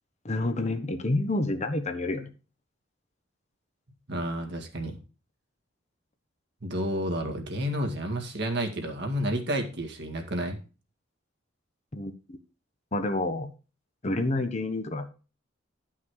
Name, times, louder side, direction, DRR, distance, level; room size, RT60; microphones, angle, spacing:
voice 1, 0.2-2.3 11.9-12.1 12.9-13.5 14.0-15.1, left 2 dB, 35° left, 8 dB, 1.0 m, -28 dB
voice 2, 4.1-5.0 6.6-10.6, equal, 60° right, 3 dB, 2.0 m, -30 dB
11.5 x 5.8 x 4.8 m, 0.33 s
head